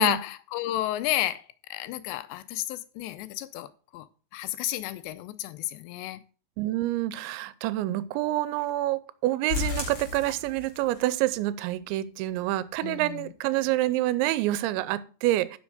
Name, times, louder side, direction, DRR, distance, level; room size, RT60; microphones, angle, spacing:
voice 1, 0.0-1.4 1.7-3.7 3.9-4.1 4.3-6.2 12.8-13.2, left 14 dB, 85° left, 2.7 m, -31 dB
voice 2, 6.6-15.6, right 15 dB, 90° right, 2.9 m, -27 dB
sound 1, 9.5-11.0 11.3-11.4 11.9-12.0 12.4-12.5, left 5 dB, 40° left, 3.3 m, -33 dB
10.5 x 6.3 x 4.9 m
omnidirectional pair, 5.1 m